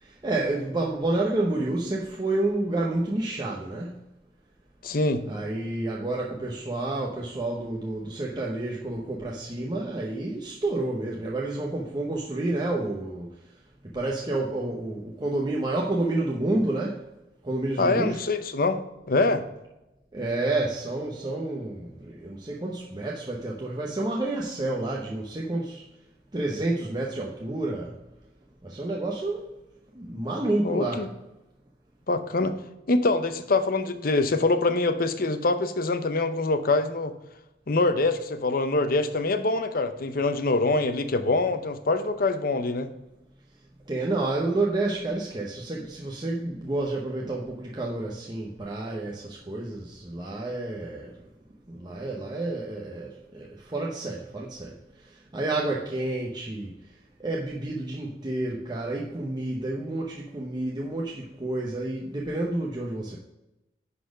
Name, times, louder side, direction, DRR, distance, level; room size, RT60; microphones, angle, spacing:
voice 1, 0.0-4.0 5.3-13.3 13.9-17.0 17.4-18.2 20.1-25.8 26.3-28.0 28.6-29.6 29.9-31.1 43.9-51.2 51.7-54.8 55.0-56.8 57.2-63.2, right 2 dB, 25° right, 0.8 m, -29 dB
voice 2, 4.8-5.2 17.8-18.8 19.1-19.4 30.6-31.1 32.1-32.6 32.9-37.1 37.7-42.9, left 3 dB, 55° left, 0.7 m, -24 dB
10.0 x 4.2 x 5.1 m
head